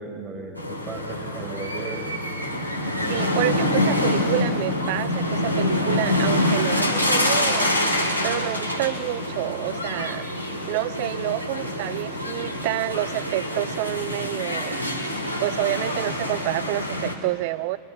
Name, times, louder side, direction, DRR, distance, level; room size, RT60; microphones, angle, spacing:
voice 1, 0.0-2.1 2.9-3.2, right 3 dB, 25° right, 1 dB, 3.9 m, -36 dB
sound 1, 0.5-17.1, left 1 dB, 90° right, 2.1 m, -26 dB
voice 2, 3.1-7.7 8.2-10.2 10.7-14.9 15.4-17.8, right 18 dB, 50° right, 19 dB, 0.4 m, -28 dB
22.0 x 17.0 x 8.0 m, 2.4 s
figure-of-eight pair, 90°, 0 cm